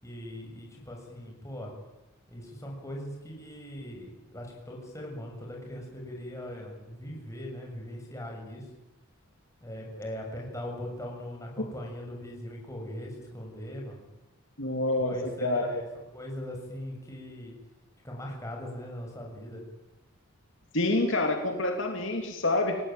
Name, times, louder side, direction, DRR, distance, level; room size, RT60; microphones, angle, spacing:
voice 1, 0.0-1.7 2.3-8.6 9.6-14.1 15.0-17.5 18.0-19.6, left 1 dB, 15° left, 0 dB, 7.1 m, -40 dB
voice 2, 14.6-15.8 20.7-22.9, left 2 dB, 60° left, 3 dB, 2.9 m, -27 dB
29.5 x 18.0 x 9.1 m, 0.96 s
head